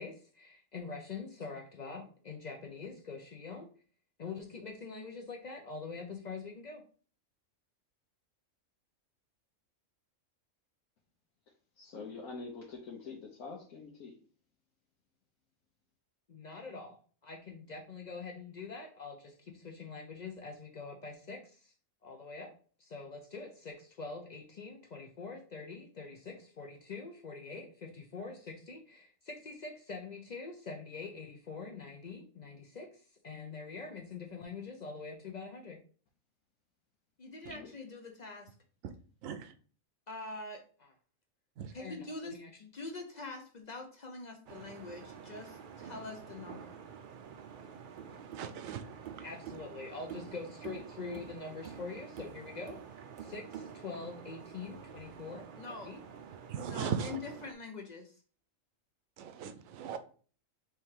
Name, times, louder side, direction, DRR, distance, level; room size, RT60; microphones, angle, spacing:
voice 1, 0.0-3.7 4.2-6.8 16.3-21.7 22.0-22.5 22.8-35.8 37.2-38.5 40.1-40.9 41.7-46.8 49.2-56.0 56.6-58.2, left 4 dB, 50° left, 3 dB, 0.5 m, -44 dB
voice 2, 11.8-14.1 37.5-37.7, left 4 dB, 80° left, -2 dB, 1.2 m, -45 dB
sound 1, 44.5-57.5, right 7 dB, 65° right, 0.5 m, -48 dB
voice 3, 48.3-48.8 56.5-57.2 59.2-60.0, right 7 dB, 80° right, 9 dB, 1.0 m, -38 dB
3.5 x 3.1 x 4.4 m, 0.42 s
omnidirectional pair, 1.4 m